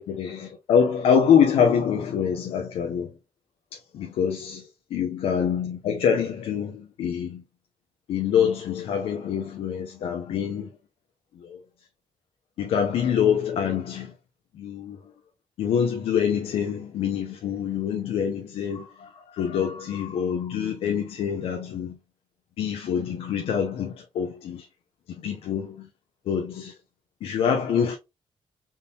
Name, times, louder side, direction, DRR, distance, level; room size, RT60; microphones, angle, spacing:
voice 1, 0.0-3.1 3.7-7.4 8.1-10.7 11.3-11.6 12.6-14.1 14.5-15.1 15.6-22.0 22.6-24.7 25.1-25.9 26.3-26.7 27.2-28.0, left 7 dB, 85° left, 0.6 m, -25 dB
3.7 x 2.7 x 2.6 m
cardioid pair, 150°, 9 cm